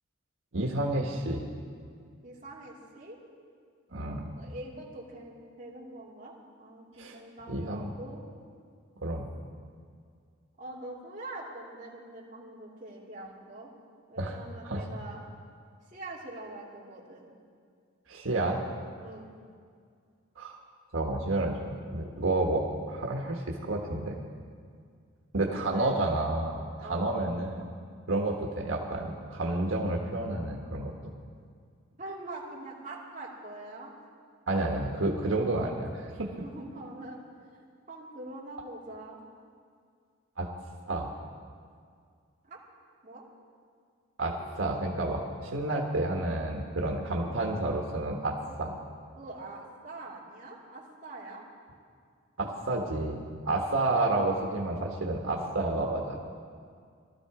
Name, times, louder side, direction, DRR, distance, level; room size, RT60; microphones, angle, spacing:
voice 1, 0.5-1.5 3.9-4.3 7.0-7.2 7.5-7.9 9.0-9.3 14.2-14.4 14.6-14.8 18.1-18.6 20.4-20.6 20.9-24.2 25.3-27.6 28.1-30.9 34.5-36.3 40.4-40.5 40.9-41.1 44.2-48.7 52.4-56.2, right 2 dB, 85° right, 0 dB, 1.4 m, -30 dB
voice 2, 2.2-3.1 4.4-8.2 10.6-13.7 14.1-15.2 15.9-17.3 19.0-19.3 21.9-22.0 25.3-26.0 26.8-27.3 32.0-33.9 36.4-37.2 37.5-39.2 42.5-42.6 43.0-43.2 48.4-48.6 49.2-51.4, right 2 dB, 35° right, -5 dB, 2.7 m, -44 dB
18.5 x 12.5 x 4.9 m, 2.2 s
head